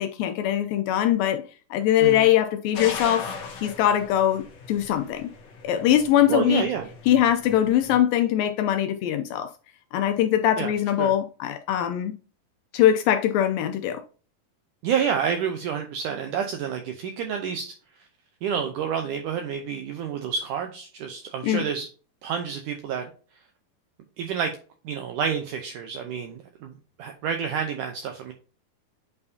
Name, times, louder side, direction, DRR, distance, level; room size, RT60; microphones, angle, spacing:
voice 1, 0.0-1.4 1.7-3.3 3.6-5.3 5.6-6.7 7.1-9.5 9.9-12.1 12.7-14.0 21.4-21.7, left 11 dB, 80° left, 2.2 m, -22 dB
sound 1, 2.7-8.0, left 5 dB, 60° left, 1.8 m, -38 dB
voice 2, 6.3-6.9 10.6-10.7 11.0-11.1 14.8-17.7 18.4-21.9 22.2-23.1 24.2-24.5 24.8-28.3, right 7 dB, 75° right, 2.0 m, -29 dB
8.5 x 4.6 x 2.7 m
omnidirectional pair, 4.3 m